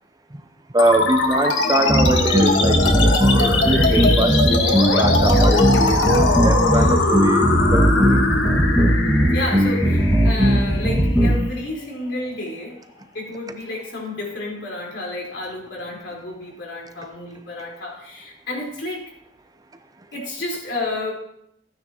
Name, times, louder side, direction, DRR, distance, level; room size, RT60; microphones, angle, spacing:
voice 1, 0.7-8.2, right 1 dB, 20° right, 7 dB, 0.6 m, -23 dB
sound 1, 0.8-11.7, left 3 dB, 90° left, 1.5 m, -21 dB
sound 2, 1.9-11.4, equal, 5° right, 1.8 m, -18 dB
voice 2, 6.7-7.0 9.3-12.8 13.1-19.1 20.1-21.1, left 2 dB, 75° left, -3 dB, 4.2 m, -31 dB
15.0 x 9.5 x 3.0 m, 0.73 s
head